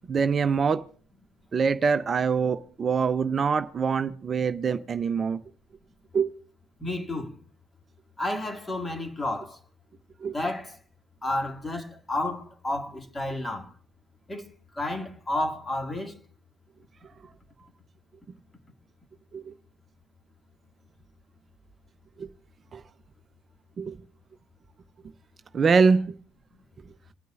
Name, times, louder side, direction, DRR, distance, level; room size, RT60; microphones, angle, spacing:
voice 1, 0.1-0.8 1.5-5.4 6.1-6.3 10.2-10.4 19.3-19.5 22.2-22.3 22.7-22.8 23.8-24.0 25.5-26.0, right 5 dB, 40° right, 0.6 m, -24 dB
voice 2, 6.8-7.4 8.2-9.6 10.3-10.8 11.2-13.7 14.3-14.5 14.7-16.2, left 1 dB, 20° left, 2.2 m, -31 dB
27.0 x 9.2 x 2.5 m
hypercardioid pair, 55°, 0 cm